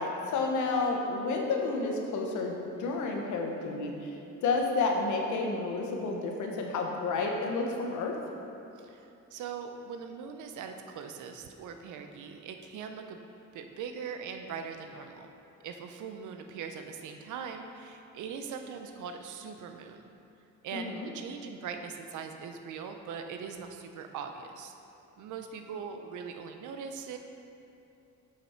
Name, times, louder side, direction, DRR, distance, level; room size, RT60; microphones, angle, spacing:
voice 1, 0.0-4.1 4.4-8.1 20.7-21.1, left 3 dB, 75° left, 1 dB, 1.1 m, -30 dB
voice 2, 8.8-13.2 13.5-15.3 15.6-20.1 20.6-24.7 25.2-27.2, right 6 dB, 80° right, 5 dB, 0.7 m, -41 dB
6.9 x 5.9 x 4.4 m, 2.7 s
cardioid pair, 90°, 30 cm